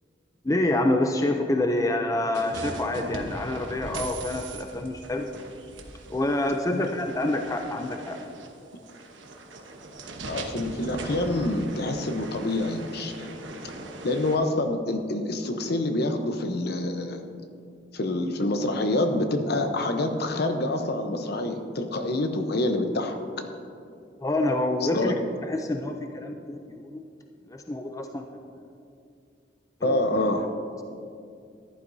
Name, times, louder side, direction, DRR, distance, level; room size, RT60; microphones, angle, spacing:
voice 1, 0.4-5.3 6.1-8.2 24.2-25.2 25.4-27.0 27.5-28.2 29.8-30.0, left 1 dB, 20° left, 4 dB, 0.5 m, -27 dB
sound 1, 2.3-14.4, right 2 dB, 90° right, 1.1 m, -39 dB
voice 2, 10.2-13.3 14.0-17.2 17.9-23.2 24.8-25.1 29.8-30.5, left 2 dB, 60° left, 6 dB, 0.9 m, -27 dB
14.5 x 11.0 x 2.7 m, 2.4 s
head